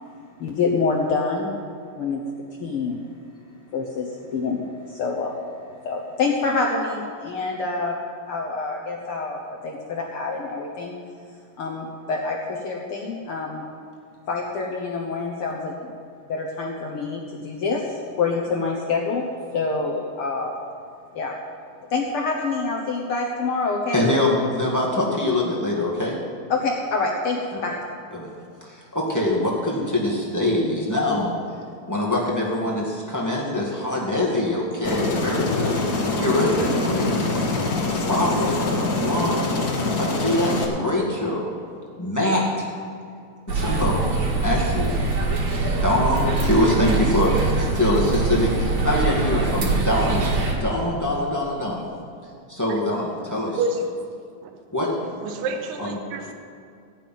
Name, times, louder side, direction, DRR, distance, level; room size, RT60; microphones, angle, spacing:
voice 1, 0.4-1.5 2.0-2.2 2.6-3.0 3.7-5.4 5.8-8.0 8.3-11.0 11.6-13.6 14.3-15.9 16.3-19.3 19.5-20.5 21.1-21.3 21.9-24.1 26.5-27.8, left 4 dB, 80° left, -2 dB, 1.2 m, -26 dB
voice 2, 23.9-26.2 27.5-27.6 28.1-28.3 28.6-31.3 31.9-35.8 36.2-37.3 38.1-38.6 39.0-39.6 40.0-41.5 42.0-42.7 43.5-44.1 44.4-45.0 45.8-47.3 47.6-50.3 50.6-51.9 52.5-53.6 54.7-54.9 55.8-56.0, left 1 dB, 20° left, -4 dB, 0.5 m, -24 dB
Aircraft, 34.8-40.6, left 2 dB, 55° left, 1.1 m, -24 dB
sound 1, 43.5-50.6, right 3 dB, 55° right, 2.9 m, -23 dB
voice 3, 53.2-54.1 54.4-54.5 54.8-56.3, right 3 dB, 80° right, 4 dB, 2.6 m, -29 dB
16.5 x 5.8 x 9.1 m, 2.3 s
omnidirectional pair, 4.0 m